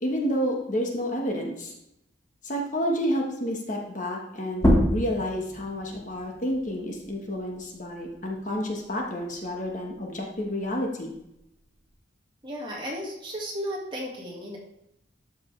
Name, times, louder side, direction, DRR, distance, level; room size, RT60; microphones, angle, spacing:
voice 1, 0.0-1.7 2.4-11.1, equal, 45° left, 0 dB, 1.4 m, -30 dB
sound 1, 4.5-9.7 10.1-11.9, equal, 15° left, 1.5 m, -29 dB
voice 2, 12.4-14.6, equal, 25° right, -3 dB, 1.9 m, -34 dB
12.0 x 5.5 x 3.3 m, 0.83 s
head